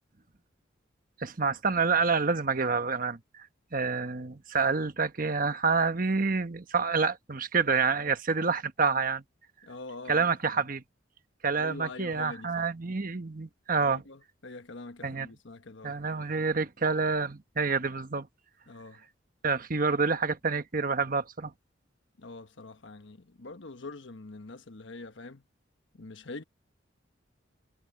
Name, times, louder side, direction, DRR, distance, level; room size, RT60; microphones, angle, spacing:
voice 1, 1.2-3.5 3.7-9.2 10.1-10.8 11.4-14.0 15.0-15.3 15.8-18.3 19.4-21.5, right 4 dB, 45° right, 1.2 m, -28 dB
voice 2, 9.6-10.6 11.5-12.7 13.7-16.0 18.7-19.0 22.2-25.4 25.9-26.4, left 3 dB, 70° left, 1.2 m, -44 dB
head